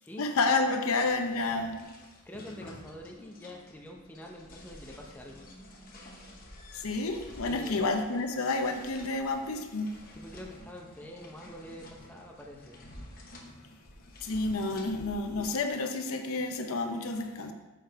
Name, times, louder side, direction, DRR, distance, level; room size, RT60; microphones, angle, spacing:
voice 1, 0.2-1.9 6.7-9.9 14.2-17.5, left 3 dB, 70° left, 5 dB, 0.6 m, -30 dB
sound 1, 0.8-15.6, left 1 dB, 40° left, 0.9 m, -50 dB
voice 2, 2.3-5.4 7.4-7.8 10.1-12.8, left 1 dB, 10° left, 0 dB, 0.6 m, -46 dB
6.6 x 4.7 x 4.6 m, 1.2 s
head